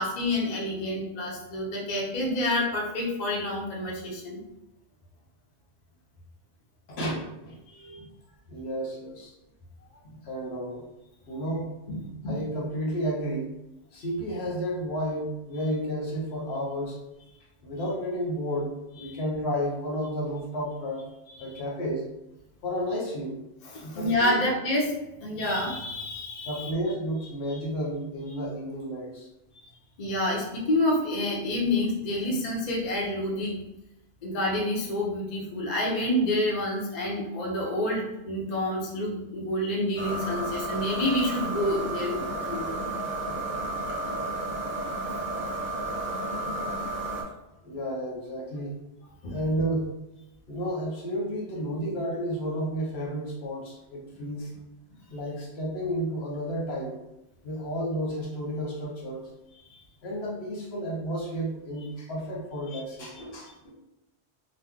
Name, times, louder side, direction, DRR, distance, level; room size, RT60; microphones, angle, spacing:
voice 1, 0.0-4.4 19.1-19.2 21.3-21.6 23.6-24.9 25.2-26.7 27.5-27.6 30.0-33.6 34.2-42.7 49.2-49.4 59.7-59.8 62.7-62.8 63.1-63.2, left 1 dB, 45° left, -3 dB, 0.7 m, -28 dB
voice 2, 6.9-8.1 8.5-9.3 10.0-10.8 11.3-13.5 13.9-17.0 17.6-21.0 21.4-22.0 22.6-23.3 23.8-24.4 26.4-29.3 47.6-48.7 49.3-49.9 50.5-54.5 55.1-56.9 57.4-59.3 60.0-63.7, equal, 70° left, -3 dB, 1.1 m, -32 dB
sound 1, 40.0-47.2, right 2 dB, 15° right, 0.4 m, -32 dB
3.0 x 2.0 x 3.5 m, 0.92 s
omnidirectional pair, 1.1 m